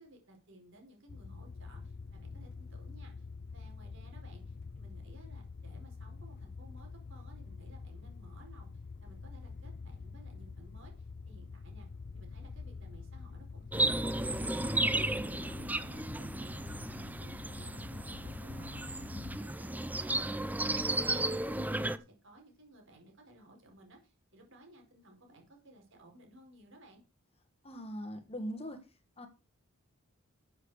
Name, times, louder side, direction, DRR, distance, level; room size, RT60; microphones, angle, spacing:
voice 1, 0.0-3.3 3.5-11.9 12.1-19.0 19.3-27.0, right 1 dB, 60° right, 4.6 m, -58 dB
sound 1, 1.1-19.4, left 4 dB, 50° left, 0.4 m, -46 dB
sound 2, 13.7-22.0, right 2 dB, 10° right, 0.6 m, -34 dB
voice 2, 27.6-28.8 29.2-29.3, equal, 30° left, 1.6 m, -40 dB
13.0 x 7.3 x 4.9 m
head